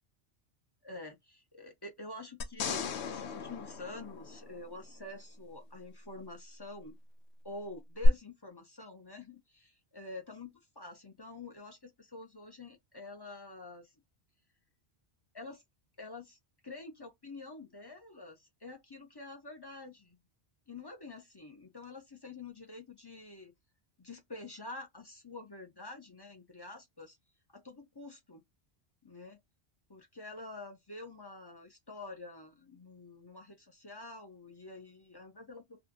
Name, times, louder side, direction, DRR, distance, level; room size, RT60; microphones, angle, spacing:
voice 1, 0.8-1.1 1.5-7.0 7.4-13.9 15.3-15.6 16.0-16.4 16.6-20.2 20.7-23.5 24.0-27.2 27.5-28.4 29.0-29.4 29.9-35.8, left 2 dB, 30° left, 0.6 m, -47 dB
sound 1, 2.4-4.9 8.0-8.1, left 6 dB, 80° left, 0.9 m, -37 dB
2.7 x 2.4 x 3.5 m
omnidirectional pair, 1.1 m